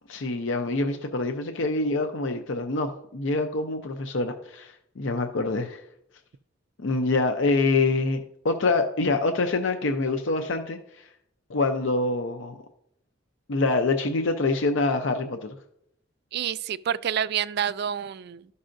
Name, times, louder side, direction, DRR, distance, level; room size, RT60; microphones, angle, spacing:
voice 1, 0.1-5.8 6.8-11.1 11.5-12.6 13.5-15.5, left 3 dB, 70° left, 0.6 m, -26 dB
voice 2, 16.3-18.5, right 9 dB, 55° right, 0.3 m, -28 dB
12.5 x 5.4 x 2.6 m
head